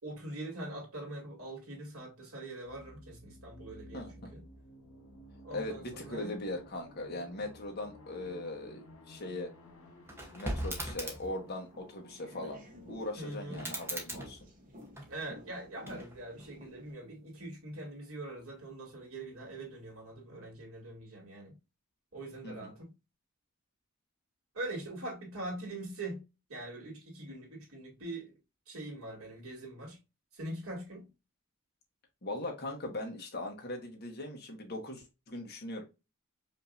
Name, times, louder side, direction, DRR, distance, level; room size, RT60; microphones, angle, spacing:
voice 1, 0.0-4.4 5.4-6.4 13.2-13.7 15.1-21.6 22.1-22.9 24.5-26.2 26.5-28.3 28.7-30.0 30.3-31.1, right 2 dB, 90° right, 2.4 m, -43 dB
sound 1, 2.6-14.2, left 1 dB, 85° left, 1.9 m, -55 dB
voice 2, 3.9-4.3 5.5-9.5 10.3-14.4 22.4-22.7 32.2-35.8, left 1 dB, 45° left, 1.3 m, -40 dB
sound 2, 10.1-11.4 13.5-15.3 15.8-16.5, right 1 dB, 10° right, 0.9 m, -40 dB
sound 3, 11.7-16.9, equal, 40° right, 0.9 m, -52 dB
5.2 x 2.7 x 2.5 m
head